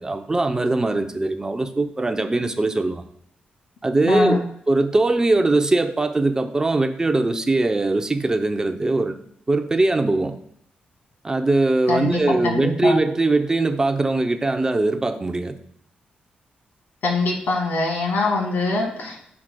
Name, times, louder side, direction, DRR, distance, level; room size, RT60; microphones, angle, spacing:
voice 1, 0.0-3.0 3.8-9.2 9.5-10.4 11.2-15.5, right 2 dB, 20° right, 7 dB, 0.5 m, -21 dB
voice 2, 4.1-4.4 11.9-13.0 17.0-19.2, left 3 dB, 75° left, 2 dB, 1.8 m, -23 dB
9.7 x 4.8 x 2.2 m, 0.68 s
wide cardioid pair, 125°, 3 cm